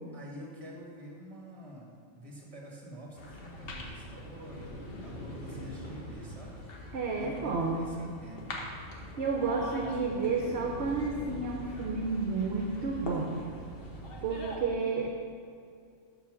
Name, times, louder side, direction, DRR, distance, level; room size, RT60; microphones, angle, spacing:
voice 1, 0.1-6.6 7.2-8.4 9.4-10.4, equal, 25° right, -3 dB, 1.6 m, -47 dB
sound 1, 3.1-14.6, equal, 50° left, 1.2 m, -42 dB
voice 2, 6.9-7.9 8.8-13.5 14.2-15.1, right 4 dB, 60° right, 1 dB, 0.9 m, -31 dB
7.1 x 5.2 x 6.2 m, 2.4 s
omnidirectional pair, 1.3 m